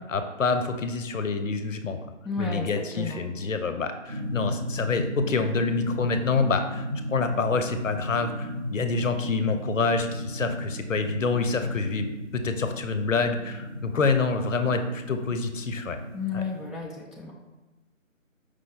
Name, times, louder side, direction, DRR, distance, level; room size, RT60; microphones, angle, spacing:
voice 1, 0.1-2.0 2.4-12.1 12.3-16.0 16.3-16.4, left 4 dB, 70° left, 8 dB, 0.5 m, -27 dB
voice 2, 2.2-3.2 16.1-17.3, left 4 dB, ahead, -3 dB, 0.3 m, -32 dB
sound 1, 4.1-16.6, left 1 dB, 50° right, 0.8 m, -35 dB
4.8 x 2.2 x 3.7 m, 1.1 s
figure-of-eight pair, 155°, 41 cm